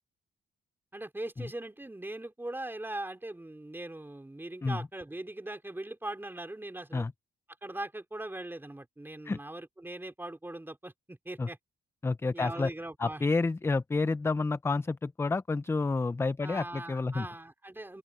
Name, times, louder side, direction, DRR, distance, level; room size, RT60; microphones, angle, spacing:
voice 1, 0.9-7.1 7.6-11.6 12.3-13.2 16.4-18.0, right 1 dB, 10° right, 3.9 m, -40 dB
voice 2, 12.0-12.7 13.0-17.3, left 3 dB, 15° left, 0.4 m, -29 dB
open air
cardioid pair, 90°, 20 cm